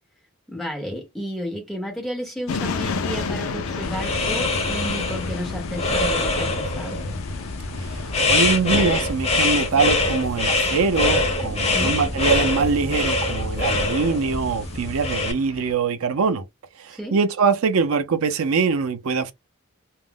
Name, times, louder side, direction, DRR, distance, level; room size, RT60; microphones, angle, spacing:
voice 1, 0.5-7.0 11.7-12.0 16.9-17.2, equal, ahead, 0.9 m, -32 dB
sound 1, 2.5-15.7, left 4 dB, 80° left, 0.4 m, -33 dB
sound 2, 3.8-15.3, left 2 dB, 30° left, 0.6 m, -24 dB
voice 2, 8.3-16.4 16.8-19.3, right 5 dB, 80° right, 0.5 m, -23 dB
2.4 x 2.0 x 3.4 m
head